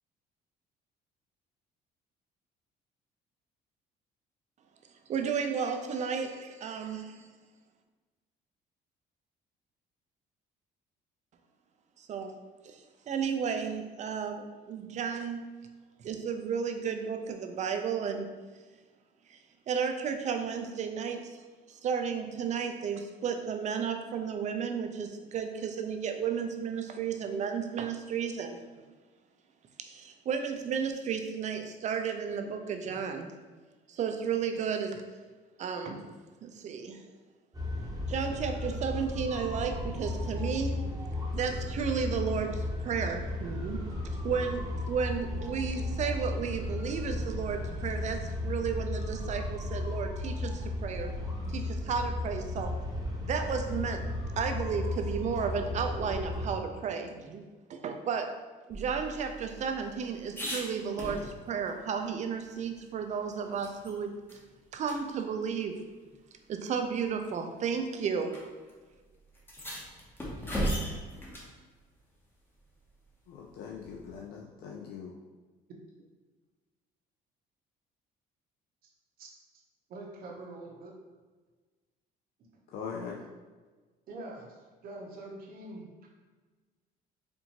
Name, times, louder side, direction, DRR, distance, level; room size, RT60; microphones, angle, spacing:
voice 1, 5.1-7.3 12.0-12.3 12.6-12.8 13.1-15.5 16.0-18.3 19.3-19.4 19.7-21.4 21.7-28.6 29.8-33.3 33.9-35.0 35.6-36.1 36.4-37.0 38.1-40.8 41.3-51.1 51.5-52.7 53.2-54.0 54.4-57.4 57.7-58.3 58.7-64.1 64.7-65.8 66.5-68.4, right 6 dB, 45° right, 5 dB, 0.4 m, -33 dB
sound 1, 37.5-56.5, left 2 dB, 20° right, 0.8 m, -35 dB
sound 2, 58.7-61.7 62.1-62.2 62.5-63.9 64.3-64.4 64.8-65.0 66.0-66.1 67.0-67.3 68.3-68.4 68.7-68.8 69.3-71.5 73.8-74.3, equal, 10° left, 0.8 m, -37 dB
voice 2, 73.3-75.2 82.7-83.2, left 6 dB, 70° left, -1 dB, 0.4 m, -41 dB
voice 3, 79.9-80.9 82.8-82.9 84.1-84.6 84.8-86.2, right 2 dB, 60° right, -1 dB, 0.8 m, -44 dB
4.3 x 2.6 x 2.9 m, 1.3 s
cardioid pair, 110°, 17 cm